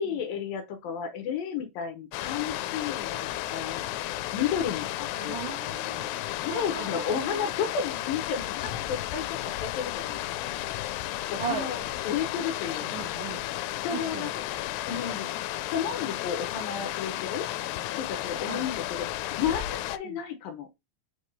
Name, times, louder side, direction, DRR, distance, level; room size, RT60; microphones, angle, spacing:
voice 1, 0.0-4.0 4.3-5.4 6.4-10.2 10.4-10.5 11.3-13.1 13.8-14.3 14.9-15.3 15.7-17.8 18.0-20.7, left 7 dB, 70° left, 2.4 m, -32 dB
sound 1, 2.1-20.0, left 14 dB, 90° left, 2.7 m, -33 dB
voice 2, 5.1-6.1 6.5-7.5 11.4-11.7 12.8-13.5 13.9-14.3 18.5-18.7 20.0-20.2, right 7 dB, 80° right, 1.8 m, -37 dB
7.5 x 3.5 x 4.1 m
omnidirectional pair, 4.7 m